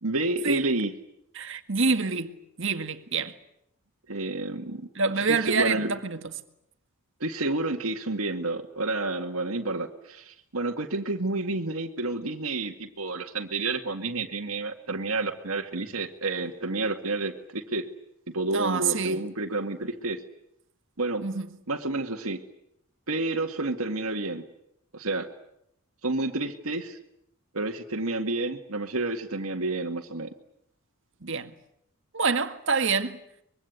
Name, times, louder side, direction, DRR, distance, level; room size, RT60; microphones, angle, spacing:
voice 1, 0.0-0.9 4.1-4.9 5.2-5.9 7.2-17.8 18.3-20.2 21.0-21.3 21.7-22.4 23.1-24.4 24.9-25.3 26.0-27.0 27.5-30.3, right 2 dB, 75° right, 2.0 m, -30 dB
voice 2, 1.4-3.3 5.0-6.2 18.5-19.2 21.2-21.5 31.2-31.5 32.1-33.2, right 4 dB, 60° right, 2.0 m, -26 dB
24.5 x 23.0 x 9.5 m
head